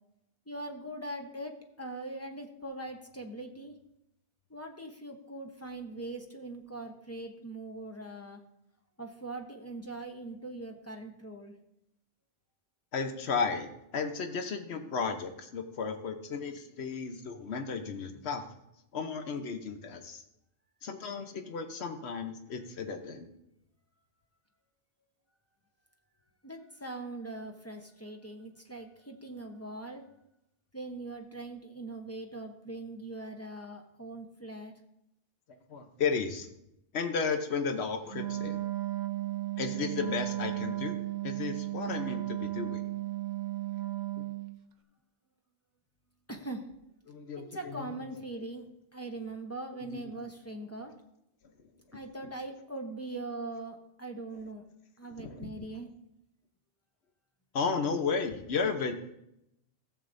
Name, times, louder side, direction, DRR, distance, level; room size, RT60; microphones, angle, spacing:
voice 1, 0.5-1.5 1.8-3.7 4.5-8.4 9.0-11.5 26.4-30.0 30.7-34.7 46.3-46.6 47.4-48.7 48.9-50.9 51.9-54.6 55.0-55.9, right 2 dB, 15° left, 3 dB, 0.8 m, -41 dB
voice 2, 12.9-18.5 18.9-20.2 20.8-23.3 35.7-36.5 36.9-38.6 39.6-42.9 44.2-44.3 47.1-47.9 48.1-48.2 49.8-50.1 55.1-55.5 57.5-59.0, left 5 dB, 85° left, 6 dB, 1.1 m, -34 dB
Wind instrument woodwind instrument, 38.1-44.6, right 16 dB, 55° right, 0.6 m, -35 dB
15.0 x 7.2 x 2.6 m, 0.82 s
omnidirectional pair, 1.1 m